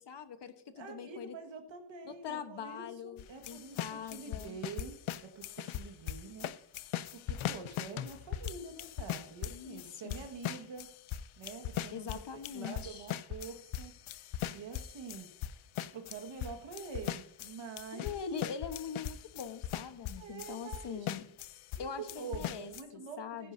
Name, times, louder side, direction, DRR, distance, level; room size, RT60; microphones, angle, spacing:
voice 1, 0.0-1.4 2.1-4.6 9.5-10.2 11.9-13.1 17.9-21.3 21.8-23.5, left 7 dB, 60° left, 9 dB, 1.3 m, -43 dB
voice 2, 0.7-6.5 7.1-10.9 11.4-13.9 14.5-15.3 15.9-18.1 20.2-21.2 21.7-23.5, right 5 dB, 70° right, 4 dB, 1.8 m, -46 dB
sound 1, 3.2-21.8 22.1-22.8, left 11 dB, 80° left, 0.7 m, -40 dB
14.5 x 10.0 x 2.7 m, 0.74 s
cardioid pair, 90°, 47 cm